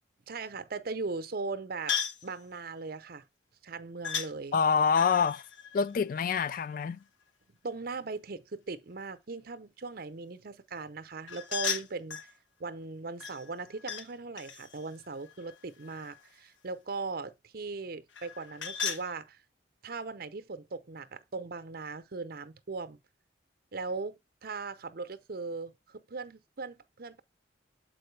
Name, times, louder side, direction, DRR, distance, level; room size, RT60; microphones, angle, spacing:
voice 1, 0.3-3.2 3.6-4.6 7.6-12.2 12.6-19.4 19.8-23.0 23.7-27.2, right 4 dB, 50° right, 0.7 m, -39 dB
sound 1, 1.9-2.3 4.0-4.3 4.9-6.7 11.3-12.3 13.2-14.1 14.4-16.3 18.1-19.1, left 7 dB, 85° left, 0.9 m, -36 dB
voice 2, 4.5-5.4 5.7-7.0, left 6 dB, 45° left, 0.3 m, -26 dB
7.5 x 4.6 x 3.2 m
head